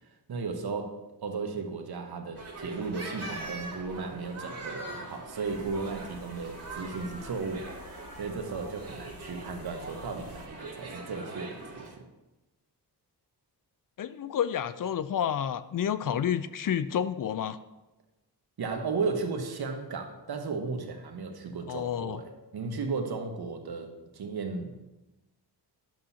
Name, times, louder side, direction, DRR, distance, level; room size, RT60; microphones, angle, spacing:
voice 1, 0.3-12.0 18.6-24.8, right 4 dB, 65° right, 4 dB, 1.2 m, -35 dB
sound 1, 2.3-11.9, right 2 dB, 35° right, 2.1 m, -42 dB
sound 2, 5.4-10.5, left 3 dB, 80° left, 0.9 m, -51 dB
voice 2, 14.0-17.6 21.7-22.2, left 9 dB, 55° left, 14 dB, 0.5 m, -30 dB
10.5 x 7.1 x 2.8 m, 1.0 s
cardioid pair, 70°, 41 cm